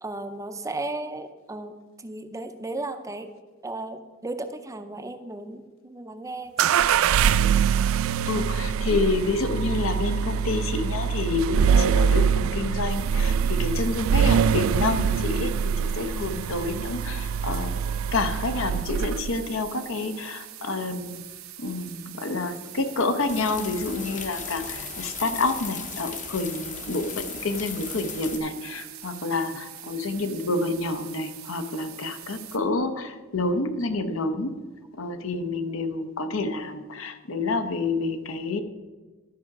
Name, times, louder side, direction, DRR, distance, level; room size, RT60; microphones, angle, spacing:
voice 1, 0.0-3.3 3.6-6.9, right 2 dB, 15° right, 8 dB, 0.5 m, -35 dB
sound 1, 6.6-19.4, right 7 dB, 70° right, 0.3 m, -24 dB
voice 2, 8.3-17.8 18.1-21.2 21.6-34.6 35.0-38.6, left 3 dB, 70° left, 9 dB, 0.8 m, -28 dB
sound 2, 12.9-32.6, right 12 dB, 90° right, 0.9 m, -43 dB
sound 3, 23.3-28.4, left 6 dB, 40° left, 0.8 m, -37 dB
12.0 x 4.9 x 5.9 m, 1.3 s
head